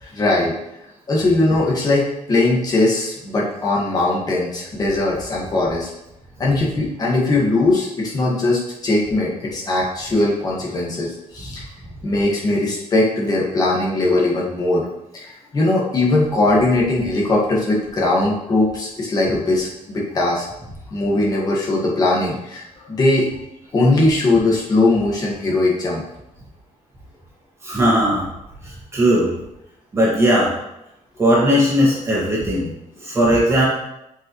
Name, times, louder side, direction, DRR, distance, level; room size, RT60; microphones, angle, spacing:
voice 1, 0.0-0.5 1.1-5.9 6.4-11.7 12.0-14.8 15.1-20.4 20.9-23.3 23.7-26.0, left 2 dB, 30° left, -3 dB, 1.8 m, -20 dB
voice 2, 27.6-28.2 28.6-29.3 29.9-30.5 31.2-32.7 33.0-33.6, equal, 20° right, -6 dB, 2.0 m, -17 dB
7.9 x 5.2 x 3.1 m, 0.86 s
cardioid pair, 165°, 13 cm